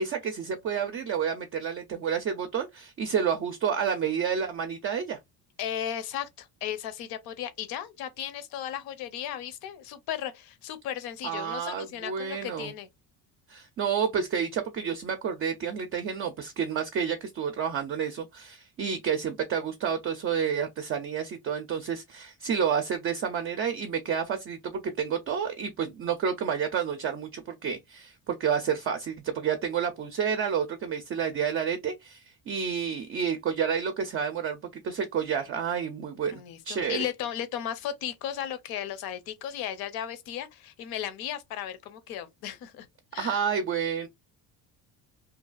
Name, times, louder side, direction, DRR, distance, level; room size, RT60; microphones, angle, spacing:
voice 1, 0.0-5.2 11.2-12.7 13.5-37.1 43.2-44.1, right 7 dB, 35° right, 0.4 m, -30 dB
voice 2, 5.6-12.9 36.3-42.9 43.1-43.4, left 10 dB, 75° left, 0.7 m, -35 dB
2.8 x 2.3 x 2.3 m
cardioid pair, 140°, 37 cm